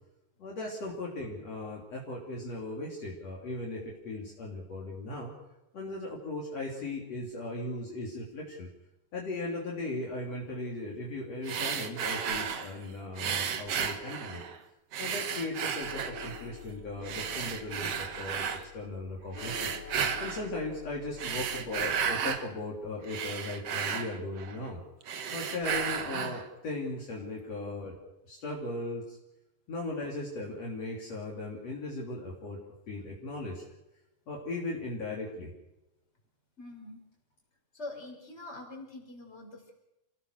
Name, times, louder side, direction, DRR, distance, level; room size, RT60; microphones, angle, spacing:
voice 1, 0.4-5.3 5.7-8.7 9.1-14.4 15.0-19.7 20.2-24.8 25.3-29.2 29.7-33.6 34.3-35.5, left 2 dB, 50° left, -3 dB, 4.1 m, -38 dB
sound 1, 11.4-12.7 13.2-14.6 14.9-16.5 17.0-18.6 19.3-20.5 21.1-22.5 22.8-24.7 25.0-26.5, right 7 dB, 55° right, 2.1 m, -33 dB
sound 2, 15.8-21.7, left 8 dB, 80° left, 3.3 m, -48 dB
voice 2, 36.6-37.0 37.7-39.7, left 2 dB, 15° left, 1 dB, 5.4 m, -44 dB
29.0 x 17.5 x 6.6 m, 0.95 s
omnidirectional pair, 4.0 m